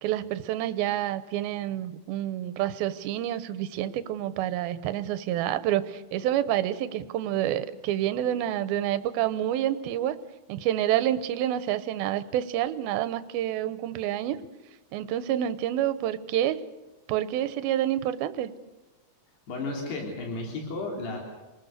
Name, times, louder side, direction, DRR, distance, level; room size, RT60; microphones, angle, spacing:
voice 1, 0.0-10.2 10.5-14.4 14.9-16.6 17.1-18.5, right 12 dB, 75° right, 12 dB, 2.7 m, -28 dB
voice 2, 19.5-21.2, left 3 dB, 85° left, 0 dB, 5.6 m, -33 dB
28.0 x 20.5 x 6.6 m, 1.1 s
omnidirectional pair, 4.6 m